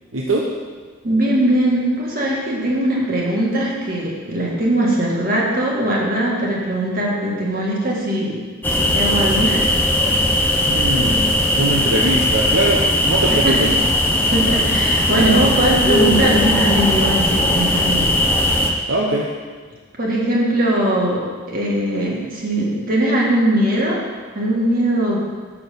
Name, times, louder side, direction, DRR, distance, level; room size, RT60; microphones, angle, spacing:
voice 1, 0.1-0.4 10.7-11.2 11.6-13.5 18.9-19.3, right 2 dB, 70° right, -2 dB, 0.8 m, -21 dB
voice 2, 1.0-8.4 8.7-9.7 10.0-10.6 13.3-13.7 14.3-18.9 20.0-24.0 24.3-25.2, right 1 dB, 45° right, -3 dB, 1.8 m, -20 dB
sound 1, 8.6-18.7, left 1 dB, 10° left, 0.7 m, -18 dB
6.3 x 5.9 x 6.7 m, 1.5 s
head